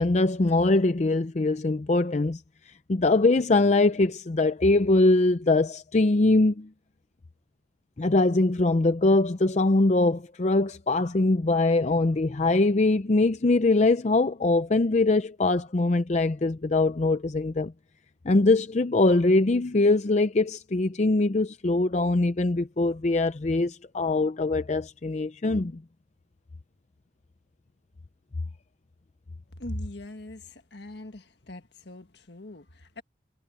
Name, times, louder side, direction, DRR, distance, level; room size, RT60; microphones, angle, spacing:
voice 1, 0.0-6.7 8.0-17.7 18.3-25.8, left 2 dB, 40° left, 0.5 m, -22 dB
voice 2, 29.6-33.0, left 1 dB, 65° left, 1.6 m, -40 dB
head